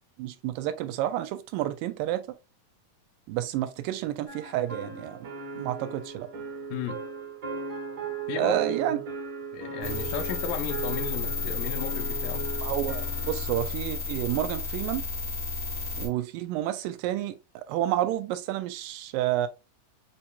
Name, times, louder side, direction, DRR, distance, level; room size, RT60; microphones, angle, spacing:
voice 1, 0.2-2.2 3.3-5.3 5.6-6.3 8.4-9.0 9.8-10.0 12.6-15.1 16.0-19.5, right 13 dB, 90° right, 2.3 m, -30 dB
sound 1, 4.3-13.7, right 6 dB, 45° right, 1.4 m, -37 dB
voice 2, 8.3-9.0 9.5-12.5, left 8 dB, 80° left, 2.2 m, -34 dB
sound 2, 9.8-16.1, left 4 dB, 5° right, 0.5 m, -32 dB
6.5 x 2.9 x 2.2 m
omnidirectional pair, 3.8 m